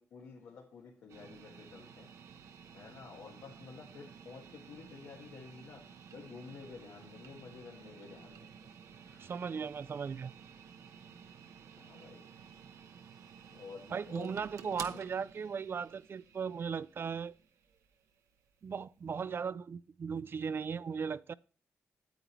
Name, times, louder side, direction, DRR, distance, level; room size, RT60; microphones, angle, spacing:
voice 1, 0.0-2.1 2.7-5.8 6.1-8.5 9.0-9.4 11.8-12.3 13.5-15.0, left 5 dB, 90° left, 1.4 m, -51 dB
sound 1, 1.1-19.2, right 7 dB, 85° right, 0.8 m, -53 dB
voice 2, 9.2-10.3 13.9-17.3 18.6-21.3, right 6 dB, 45° right, 0.3 m, -37 dB
8.9 x 8.2 x 3.1 m
cardioid pair, 80°, 5 cm